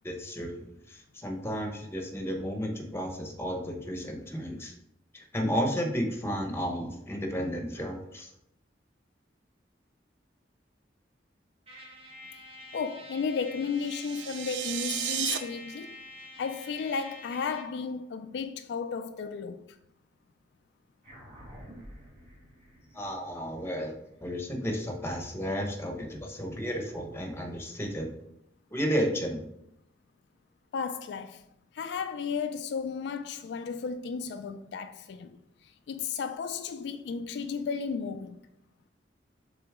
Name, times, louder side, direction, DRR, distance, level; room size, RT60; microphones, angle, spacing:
voice 1, 0.0-4.7 5.1-8.3 22.9-28.1 28.7-29.4, equal, 15° left, 1.0 m, -33 dB
Trumpet, 11.7-17.8, left 2 dB, 35° right, 1.4 m, -47 dB
voice 2, 12.7-16.1 16.4-19.8 30.7-31.5 31.7-38.4, left 5 dB, 70° left, 0.3 m, -34 dB
sound 1, 13.8-15.4, right 10 dB, 80° right, 0.5 m, -33 dB
sound 2, 21.0-25.8, equal, 50° right, 2.5 m, -51 dB
6.8 x 3.8 x 3.6 m
head